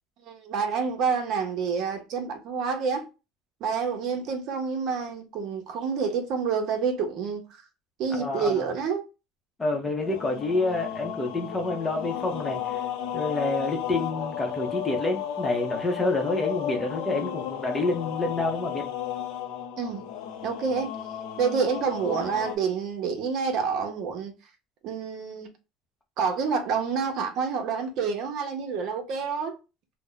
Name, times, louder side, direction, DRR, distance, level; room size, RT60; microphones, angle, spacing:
voice 1, 0.2-3.1 3.6-7.4 8.0-9.0 19.8-20.0 20.4-21.0 21.4-24.3 24.8-25.5 26.2-29.6, right 5 dB, 55° right, 0.8 m, -28 dB
voice 2, 8.2-8.6 9.6-12.8 13.1-18.8, left 2 dB, 15° left, 0.7 m, -28 dB
sound 1, 10.0-22.6, left 9 dB, 85° left, 0.6 m, -34 dB
2.7 x 2.1 x 3.8 m
cardioid pair, 150°, 0 cm